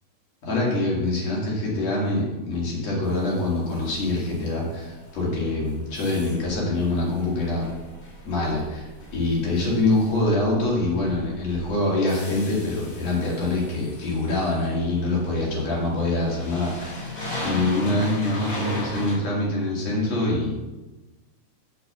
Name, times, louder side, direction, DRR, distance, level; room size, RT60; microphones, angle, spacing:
voice 1, 0.4-7.7 8.2-20.6, left 2 dB, 60° left, -4 dB, 3.3 m, -25 dB
sound 1, 3.0-19.2, left 1 dB, 30° left, 2.0 m, -39 dB
6.7 x 5.4 x 6.7 m, 1.1 s
omnidirectional pair, 3.4 m